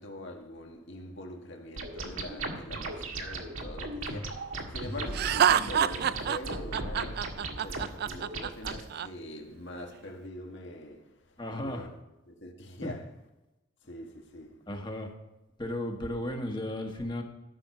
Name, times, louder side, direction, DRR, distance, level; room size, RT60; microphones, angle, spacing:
voice 1, 0.0-11.9 12.3-13.0 13.8-14.6, left 1 dB, 60° left, 1.7 m, -44 dB
sound 1, 1.8-8.8, right 2 dB, 80° right, 1.7 m, -37 dB
Laughter, 5.1-9.1, right 9 dB, 50° right, 0.3 m, -27 dB
voice 2, 11.4-11.9 12.8-12.9 14.7-15.1 15.6-17.2, left 1 dB, 20° left, 1.5 m, -34 dB
13.5 x 6.3 x 5.9 m
head